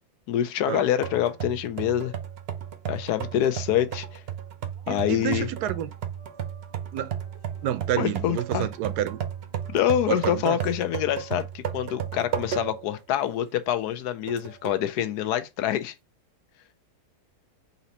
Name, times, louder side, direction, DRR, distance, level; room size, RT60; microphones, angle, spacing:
voice 1, 0.3-2.1 2.9-4.2 4.9-5.5 8.0-8.7 9.7-16.0, left 11 dB, 85° left, 1.2 m, -26 dB
sound 1, 1.0-13.0 13.4-13.5 14.3-14.9, right 9 dB, 60° right, 0.7 m, -34 dB
sound 2, 4.4-4.9 5.2-13.1, equal, 30° left, 1.3 m, -59 dB
voice 2, 4.9-5.9 6.9-7.2 7.6-9.2 10.1-10.6, right 11 dB, 85° right, 1.1 m, -29 dB
4.1 x 2.9 x 4.0 m
omnidirectional pair, 1.7 m